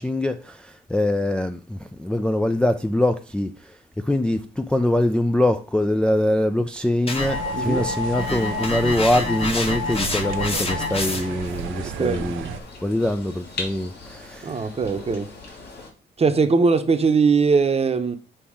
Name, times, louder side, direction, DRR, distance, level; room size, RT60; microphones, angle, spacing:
voice 1, 0.0-12.5 12.8-14.7 15.1-15.2, left 1 dB, 5° left, 0.4 m, -23 dB
sound 1, 7.1-11.5, left 4 dB, 30° left, 1.3 m, -27 dB
sound 2, 7.2-12.6, right 9 dB, 90° right, 0.6 m, -34 dB
voice 2, 7.5-7.8 12.0-12.3 14.4-15.3 16.2-18.2, right 4 dB, 30° right, 0.9 m, -20 dB
sound 3, 8.3-15.9, left 3 dB, 55° left, 2.4 m, -40 dB
7.2 x 2.9 x 4.9 m
cardioid pair, 90°, 20 cm